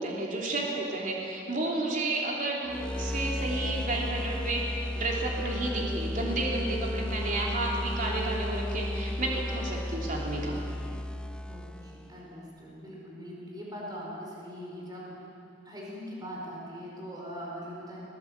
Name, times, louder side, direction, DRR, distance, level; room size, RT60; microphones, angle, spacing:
voice 1, 0.0-10.6, right 2 dB, 50° right, -2 dB, 3.2 m, -31 dB
sound 1, 2.7-12.2, left 1 dB, 5° left, 0.4 m, -34 dB
voice 2, 11.4-15.1 15.6-18.0, equal, 25° right, -3 dB, 4.9 m, -41 dB
21.0 x 18.0 x 8.2 m, 2.6 s
head